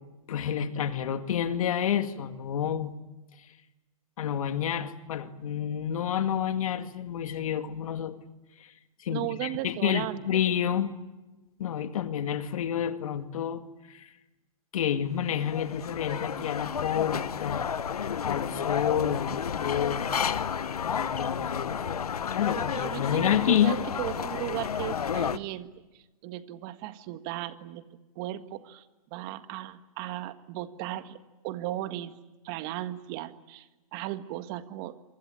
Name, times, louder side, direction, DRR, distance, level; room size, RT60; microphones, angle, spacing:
voice 1, 0.3-2.9 4.2-8.1 8.6-8.7 9.0-11.0 11.6-14.1 14.7-17.7 18.2-20.1 20.9-21.8 22.3-23.8, left 9 dB, 65° left, 8 dB, 2.2 m, -29 dB
voice 2, 9.1-10.2 22.5-27.8 28.1-28.8 29.1-31.2 31.4-32.1 32.4-34.9, right 15 dB, 40° right, 10 dB, 1.7 m, -36 dB
sound 1, 15.1-25.4, left 7 dB, 90° left, 1.2 m, -31 dB
27.0 x 24.5 x 9.0 m, 1.1 s
hypercardioid pair, 140°, 19 cm